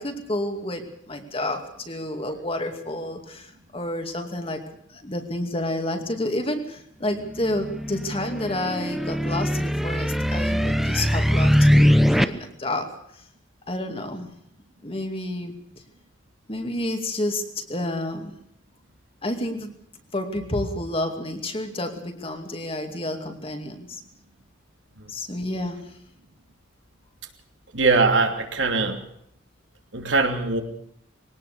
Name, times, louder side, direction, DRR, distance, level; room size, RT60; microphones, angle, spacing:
voice 1, 0.0-4.6 4.9-13.2 13.7-14.3 14.8-15.5 16.5-18.4 19.2-19.7 20.1-24.0 25.1-25.9, left 1 dB, 30° left, 5 dB, 2.5 m, -30 dB
sound 1, 7.3-12.2, equal, ahead, 0.8 m, -21 dB
voice 2, 27.7-29.0 29.9-30.6, right 3 dB, 70° right, 5 dB, 2.9 m, -21 dB
21.5 x 18.5 x 6.7 m, 0.70 s
head